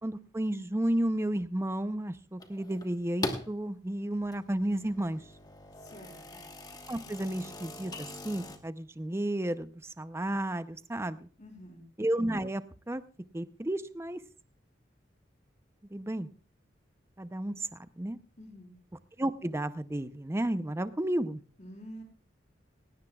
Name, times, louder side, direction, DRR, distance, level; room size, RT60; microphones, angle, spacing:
voice 1, 0.0-5.2 6.9-11.3 12.0-13.0 13.3-14.2 15.9-16.3 17.2-18.2 19.2-21.4, right 1 dB, 15° right, 13 dB, 0.6 m, -32 dB
sound 1, 2.4-3.5 4.1-8.6, left 2 dB, 20° left, 1.2 m, -41 dB
voice 2, 5.8-6.4 11.4-11.8 18.4-18.8 21.6-22.0, equal, 40° left, 4 dB, 3.7 m, -48 dB
17.5 x 17.0 x 2.3 m, 0.40 s
head